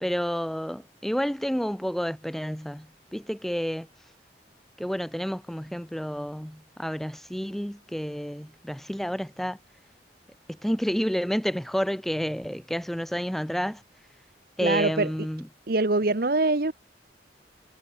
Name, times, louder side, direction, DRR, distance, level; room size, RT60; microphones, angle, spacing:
voice 1, 0.0-3.9 4.8-9.6 10.5-13.8 14.6-15.5, equal, ahead, 0.3 m, -30 dB
voice 2, 14.6-15.1 15.7-16.7, right 2 dB, 55° right, 1.1 m, -23 dB
head